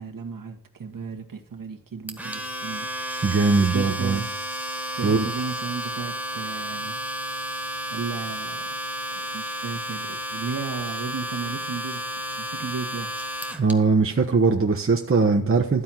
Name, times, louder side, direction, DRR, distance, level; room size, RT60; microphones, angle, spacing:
voice 1, 0.0-2.9 3.7-4.3 4.9-7.0 7.9-8.8 9.1-13.1, right 5 dB, 55° right, 1.6 m, -34 dB
Domestic sounds home sounds, 2.1-13.7, right 1 dB, 5° right, 1.6 m, -32 dB
voice 2, 3.2-4.2 5.0-5.2 13.6-15.8, right 4 dB, 35° right, 1.0 m, -20 dB
12.5 x 4.3 x 7.6 m
cardioid pair, 75°, 39 cm